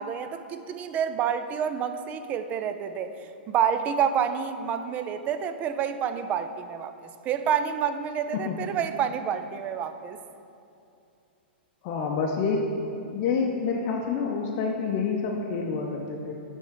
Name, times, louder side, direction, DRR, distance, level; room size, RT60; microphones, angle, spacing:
voice 1, 0.0-3.1 3.5-10.2, right 8 dB, 25° right, 10 dB, 0.4 m, -28 dB
voice 2, 11.8-12.7 13.1-16.3, left 5 dB, 40° left, 1 dB, 0.6 m, -28 dB
8.3 x 3.6 x 4.8 m, 2.6 s
figure-of-eight pair, 110°, 6 cm